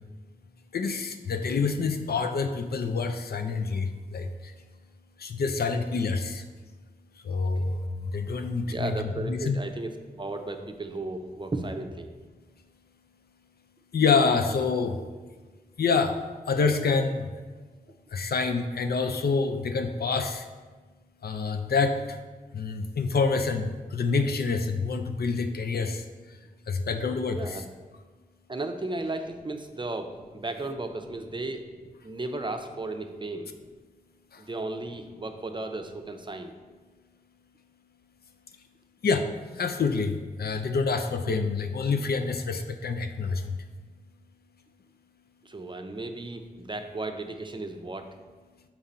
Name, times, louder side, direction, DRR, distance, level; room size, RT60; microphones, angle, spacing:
voice 1, 0.7-4.5 5.2-6.4 7.2-8.9 9.2-9.6 13.9-15.0 15.8-16.2 16.5-17.3 18.1-20.5 21.2-22.2 22.5-26.0 26.7-27.6 34.3-34.4 39.0-39.3 39.6-43.6, left 4 dB, 90° left, 7 dB, 0.4 m, -27 dB
voice 2, 8.6-12.1 27.3-27.6 28.5-31.6 32.0-33.5 34.4-36.5 45.4-48.1, right 2 dB, 30° right, 6 dB, 0.5 m, -35 dB
5.9 x 3.8 x 4.2 m, 1.3 s
wide cardioid pair, 60°, 16 cm